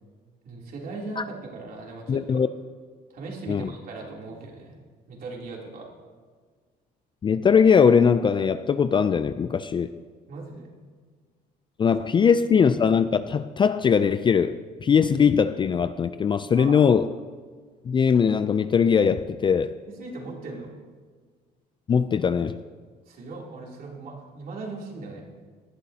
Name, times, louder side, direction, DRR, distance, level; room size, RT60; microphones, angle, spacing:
voice 1, 0.4-2.4 3.1-4.7 5.1-5.9 10.3-10.7 12.2-12.3 16.6-16.8 20.0-20.7 23.1-25.2, right 3 dB, 60° right, -2 dB, 3.2 m, -38 dB
voice 2, 2.1-2.5 3.5-3.7 7.2-9.9 11.8-17.1 17.9-19.8 21.9-22.6, left 6 dB, 30° left, 12 dB, 0.4 m, -21 dB
18.5 x 11.5 x 2.8 m, 1.5 s
cardioid pair, 110°, 17 cm